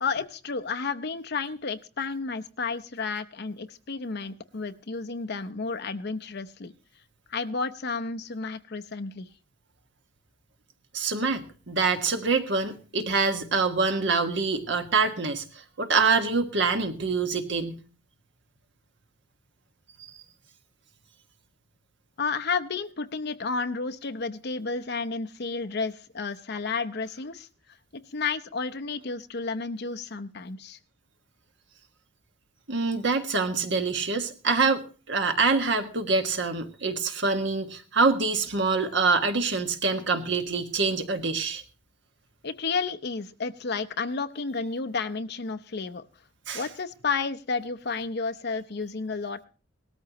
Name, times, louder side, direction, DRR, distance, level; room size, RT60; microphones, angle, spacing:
voice 1, 0.0-6.7 7.3-9.3 22.2-27.5 27.9-30.8 42.4-46.1 46.5-49.4, left 4 dB, 55° left, 11 dB, 0.7 m, -31 dB
voice 2, 10.9-15.4 15.8-17.8 32.7-41.6 46.5-46.6, right 4 dB, 60° right, 6 dB, 1.6 m, -25 dB
18.5 x 13.5 x 3.0 m, 0.35 s
head